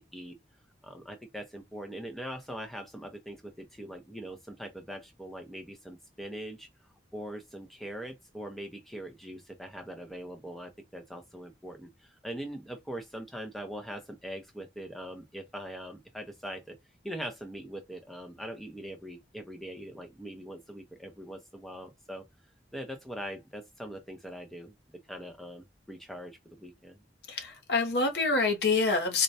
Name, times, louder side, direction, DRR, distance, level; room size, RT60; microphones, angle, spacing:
voice 1, 0.8-6.7 7.1-16.8 17.0-22.2 22.7-24.7 25.1-27.0, equal, ahead, 0.6 m, -42 dB
voice 2, 27.3-29.2, left 3 dB, 70° left, 0.9 m, -26 dB
4.1 x 2.2 x 2.6 m
head